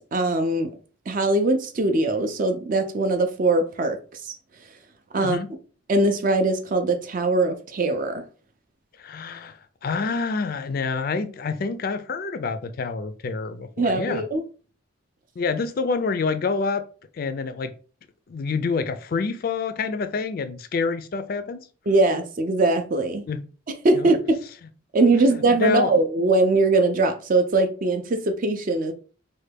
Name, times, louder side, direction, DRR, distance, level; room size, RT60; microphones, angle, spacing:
voice 1, 0.1-0.7 1.1-4.0 4.2-4.3 5.1-5.4 5.9-8.2 13.8-14.4 21.9-23.2 23.8-24.4 24.9-28.9, right 2 dB, 40° right, 0.4 m, -21 dB
voice 2, 5.2-5.5 9.0-14.2 15.4-16.8 17.1-17.7 18.3-21.6 23.3-23.5 23.9-24.1 25.1-25.2 25.5-25.9, left 4 dB, 45° left, 0.3 m, -27 dB
3.2 x 2.2 x 3.3 m
head